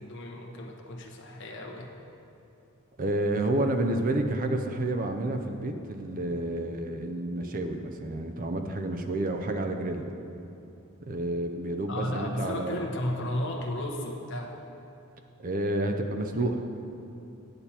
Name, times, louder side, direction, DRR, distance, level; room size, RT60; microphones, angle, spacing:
voice 1, 0.0-1.9 11.9-14.6, left 1 dB, 55° left, 1 dB, 1.0 m, -34 dB
voice 2, 3.0-10.1 11.0-12.8 15.4-16.8, right 1 dB, 40° right, 6 dB, 0.6 m, -30 dB
8.9 x 8.6 x 4.3 m, 2.8 s
head